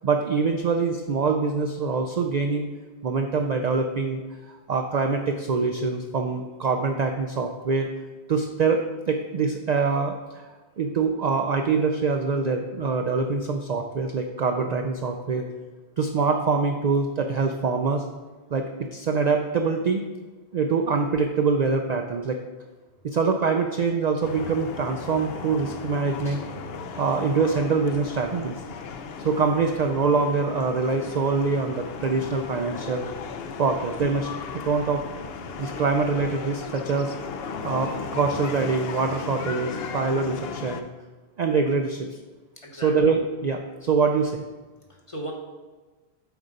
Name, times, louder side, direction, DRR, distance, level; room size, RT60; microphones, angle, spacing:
voice 1, 0.0-2.7 3.0-4.2 4.5-7.9 8.3-10.4 10.8-15.4 16.0-18.0 18.5-18.7 18.9-20.0 20.5-22.4 23.0-26.4 27.0-28.6 29.2-33.1 33.6-35.0 35.6-37.1 37.6-40.9 41.4-42.1 42.7-44.4, right 4 dB, 55° right, 4 dB, 0.5 m, -24 dB
sound 1, 24.2-40.8, left 5 dB, 70° left, 0.8 m, -36 dB
voice 2, 42.6-42.9 44.9-45.3, right 1 dB, 30° left, -1 dB, 1.1 m, -38 dB
8.0 x 3.9 x 5.1 m, 1.3 s
omnidirectional pair, 1.1 m